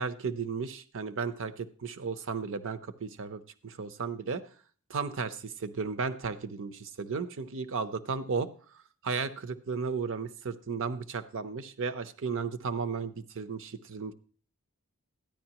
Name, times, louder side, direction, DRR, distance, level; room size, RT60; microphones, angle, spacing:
voice 1, 0.0-4.4 4.9-8.5 9.0-14.1, right 5 dB, 60° right, 12 dB, 0.7 m, -34 dB
13.5 x 10.0 x 2.9 m, 0.42 s
head